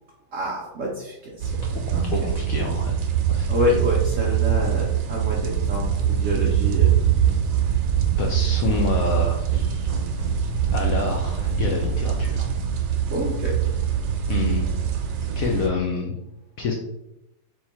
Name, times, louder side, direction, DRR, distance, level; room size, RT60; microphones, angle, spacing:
voice 1, 0.3-1.6 1.9-2.3 3.5-6.9 13.1-13.6, left 1 dB, 65° right, -2 dB, 0.8 m, -27 dB
sound 1, 1.4-15.7, right 9 dB, 85° right, 1.3 m, -23 dB
voice 2, 1.7-3.0 3.3-3.5 8.2-9.9 10.7-12.5 14.3-14.6 15.4-16.2 16.6-16.7, left 4 dB, 70° left, 0 dB, 0.8 m, -28 dB
sound 2, 4.3-12.9, equal, 25° right, 0.8 m, -36 dB
3.5 x 3.0 x 4.1 m, 0.87 s
omnidirectional pair, 2.0 m